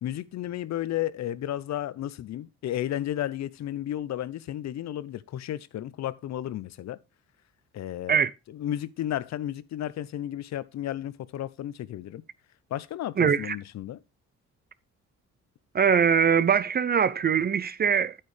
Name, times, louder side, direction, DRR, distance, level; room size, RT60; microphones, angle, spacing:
voice 1, 0.0-7.0 7.7-8.2 8.5-12.2 12.7-14.0, left 12 dB, 65° left, 0.7 m, -33 dB
voice 2, 13.2-13.6 15.7-18.1, right 7 dB, 35° right, 0.5 m, -22 dB
9.3 x 8.7 x 3.2 m
cardioid pair, 90°, 30 cm